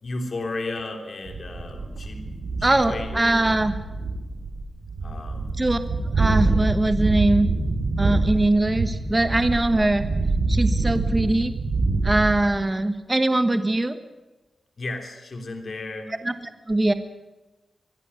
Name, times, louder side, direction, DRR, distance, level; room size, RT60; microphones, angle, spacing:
voice 1, 0.0-2.2 2.6-3.7 5.0-5.5 14.8-16.1, left 2 dB, 55° left, 3 dB, 3.0 m, -34 dB
sound 1, 1.3-12.4, right 3 dB, 90° right, 6.5 m, -25 dB
voice 2, 2.6-3.7 5.6-5.8 6.2-7.5 8.0-10.0 10.5-11.5 12.0-14.0 16.2-16.3 16.7-16.9, right 2 dB, 20° right, 10 dB, 1.3 m, -21 dB
23.5 x 11.5 x 9.7 m, 1.1 s
cardioid pair, 80°, 0 cm